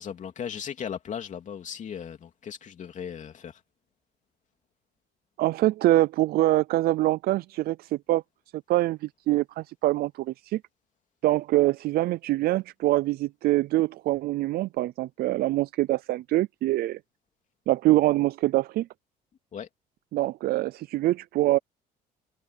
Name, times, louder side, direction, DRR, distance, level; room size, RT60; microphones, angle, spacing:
voice 1, 0.0-3.6 19.5-19.7, left 8 dB, 45° left, 3.0 m, -37 dB
voice 2, 5.4-8.2 8.7-10.6 11.2-17.0 17.7-18.9 20.1-21.6, right 16 dB, 65° right, 0.4 m, -24 dB
cardioid pair, 110°, 17 cm